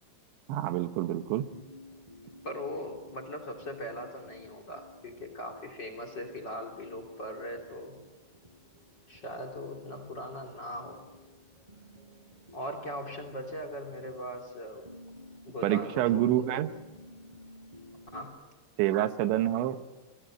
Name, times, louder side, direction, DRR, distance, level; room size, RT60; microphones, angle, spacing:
voice 1, 0.5-1.5 15.6-16.7 18.8-19.8, right 13 dB, 85° right, 10 dB, 3.4 m, -27 dB
sound 1, 0.7-18.2, left 1 dB, 10° right, 5.7 m, -53 dB
voice 2, 2.4-8.0 9.1-11.0 12.5-14.8 15.5-16.5 18.1-18.3, equal, 30° left, 7 dB, 2.8 m, -40 dB
29.5 x 22.5 x 9.0 m, 1.2 s
omnidirectional pair, 5.2 m